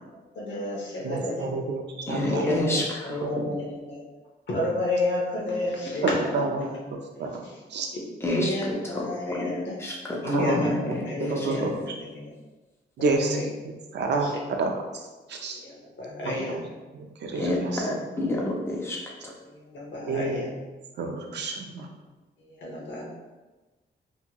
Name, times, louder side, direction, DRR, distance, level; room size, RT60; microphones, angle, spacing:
voice 1, 0.0-1.5 2.3-2.7 3.0-4.0 4.5-6.5 7.4-7.5 8.2-9.8 10.2-12.3 13.1-13.5 15.5-16.6 19.5-20.5 22.6-23.0, left 2 dB, 85° left, -3 dB, 0.8 m, -30 dB
voice 2, 1.0-2.6 3.1-3.6 6.3-7.4 7.7-7.9 10.2-12.0 13.0-14.7 15.3-15.6 16.2-16.6 17.2-17.9 20.1-20.6 21.0-21.9, right 3 dB, 70° right, 2 dB, 0.4 m, -30 dB
voice 3, 2.1-2.8 8.2-9.1 9.6-11.5 17.4-19.0, left 1 dB, 15° left, -2 dB, 0.4 m, -29 dB
2.8 x 2.7 x 2.2 m, 1.2 s
wide cardioid pair, 160°, 18 cm